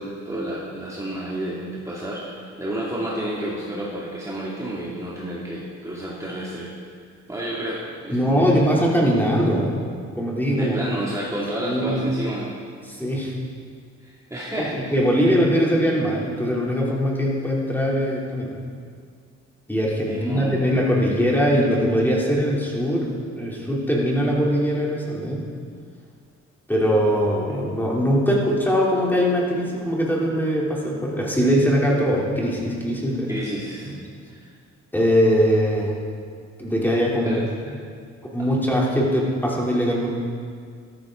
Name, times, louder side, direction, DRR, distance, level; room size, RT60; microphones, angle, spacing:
voice 1, 0.0-6.7 7.3-8.7 10.5-12.5 14.0-15.3 20.0-20.6 33.3-33.9 34.3-34.5 37.2-37.4 38.4-38.5, right 1 dB, 10° right, -7 dB, 2.4 m, -31 dB
voice 2, 8.1-9.7 10.2-10.7 11.6-12.0 12.9-13.4 14.6-18.6 19.7-25.5 26.7-33.3 33.8-34.0 34.9-35.9 36.6-37.4 38.2-40.1, equal, 5° left, -4 dB, 3.2 m, -21 dB
13.5 x 13.5 x 3.9 m, 2.1 s
cardioid pair, 90°, 30 cm